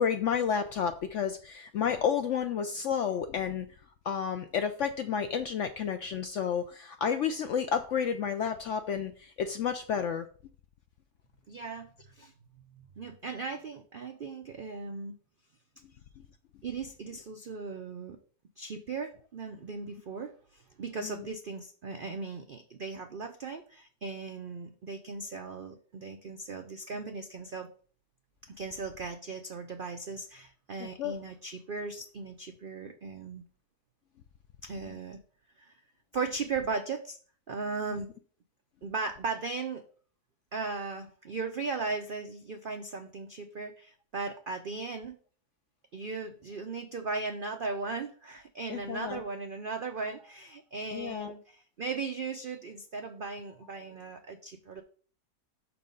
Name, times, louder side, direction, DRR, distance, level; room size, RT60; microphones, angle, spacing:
voice 1, 0.0-3.7 4.0-10.3 21.0-21.2 30.8-31.1 37.9-38.0 48.7-49.2 50.9-51.3, left 7 dB, 70° left, 7 dB, 0.7 m, -31 dB
voice 2, 11.5-12.3 13.0-15.2 16.6-18.2 18.6-27.7 28.5-33.4 34.6-35.2 35.7-35.8 36.1-37.2 37.5-38.1 38.8-39.8 40.5-45.2 45.9-54.8, right 4 dB, 75° right, 6 dB, 0.5 m, -37 dB
6.2 x 4.4 x 5.4 m, 0.43 s
omnidirectional pair, 1.7 m